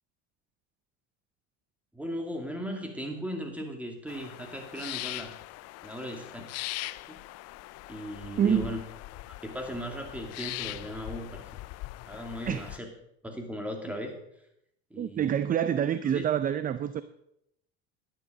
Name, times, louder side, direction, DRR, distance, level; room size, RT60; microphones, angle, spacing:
voice 1, 1.9-5.3 5.8-6.4 6.8-6.9 7.9-8.8 9.4-11.4 12.0-12.9 13.2-14.1 14.9-15.3 16.1-16.2, equal, 5° right, 2.7 m, -37 dB
sound 1, 4.1-12.8, left 18 dB, 55° left, 0.5 m, -41 dB
voice 2, 8.4-8.7 12.5-12.7 15.0-17.0, right 9 dB, 25° right, 0.5 m, -27 dB
11.0 x 10.0 x 5.1 m
supercardioid pair, 100°, 31 cm